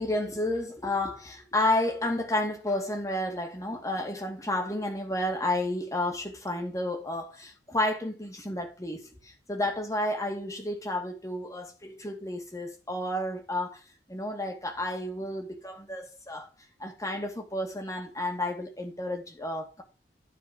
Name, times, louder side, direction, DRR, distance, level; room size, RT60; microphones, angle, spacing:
voice 1, 0.0-13.8 14.1-16.5 16.8-19.8, left 1 dB, 20° left, 2.1 m, -31 dB
13.0 x 4.7 x 5.2 m
head